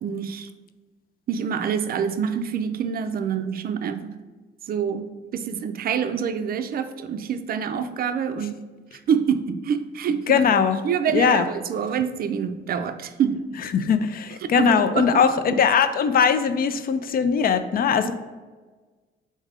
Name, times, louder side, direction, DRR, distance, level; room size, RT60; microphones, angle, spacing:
voice 1, 0.0-0.5 1.3-4.1 4.6-8.6 9.1-10.4 10.8-13.4 14.4-15.1 15.5-15.6 18.0-18.1, right 7 dB, 50° right, 9 dB, 0.4 m, -26 dB
voice 2, 10.3-10.8 11.1-11.5 13.7-18.1, left 6 dB, 50° left, 11 dB, 0.4 m, -20 dB
3.6 x 2.7 x 4.7 m, 1.3 s
cardioid pair, 90°, 20 cm